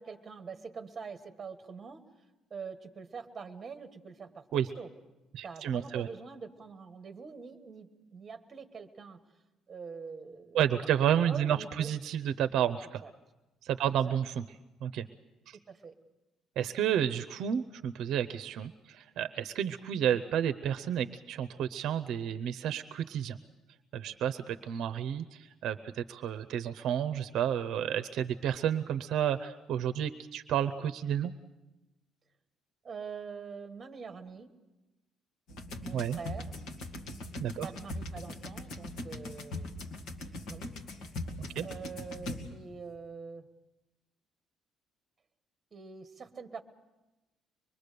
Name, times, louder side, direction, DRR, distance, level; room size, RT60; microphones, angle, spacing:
voice 1, 0.0-2.0 2.5-4.4 4.8-4.9 5.4-9.2 9.7-10.6 11.0-12.0 13.0-13.1 13.8-14.2 15.7-15.9 32.8-34.5 35.8-36.5 37.6-39.7 40.5-40.7 40.9-41.1 41.6-43.5 45.7-46.6, right 5 dB, 20° right, 7 dB, 1.4 m, -44 dB
voice 2, 5.3-6.1 10.5-13.0 13.6-14.4 14.8-15.1 15.5-15.6 16.6-23.4 23.9-31.3 35.9-36.2 37.4-37.7 41.4-41.6, right 9 dB, 60° right, 10 dB, 0.7 m, -31 dB
sound 1, 35.5-42.8, left 2 dB, 70° left, 2.2 m, -41 dB
24.5 x 22.0 x 6.8 m, 1.0 s
cardioid pair, 175°, 0 cm